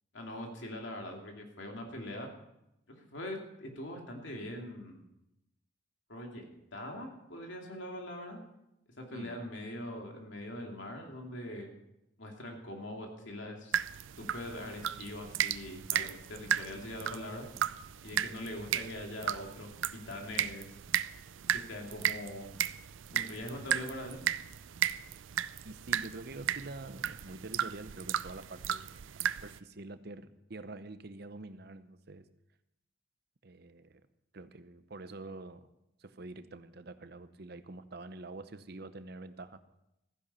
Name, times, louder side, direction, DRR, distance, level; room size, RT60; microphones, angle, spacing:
voice 1, 0.1-2.3 2.9-5.0 6.1-8.4 9.0-11.7 12.2-13.7 14.2-17.5 18.0-20.7 21.5-22.5 23.1-24.2, left 1 dB, 70° left, 2 dB, 2.7 m, -42 dB
sound 1, 13.7-29.6, right 10 dB, 75° right, 0.4 m, -35 dB
voice 2, 25.6-32.3 33.4-34.0 34.3-35.7 36.0-39.6, right 2 dB, 55° right, 12 dB, 0.8 m, -46 dB
14.5 x 10.0 x 5.6 m, 0.86 s
head